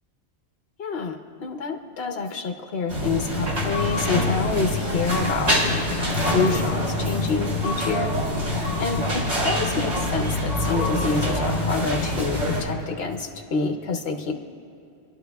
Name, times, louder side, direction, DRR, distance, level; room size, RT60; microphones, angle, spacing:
voice 1, 0.8-8.1 8.5-14.3, left 4 dB, 60° left, 3 dB, 1.2 m, -28 dB
sound 1, 2.9-12.6, left 1 dB, 80° right, 3.3 m, -25 dB
27.5 x 11.5 x 2.3 m, 2.8 s
omnidirectional pair, 1.2 m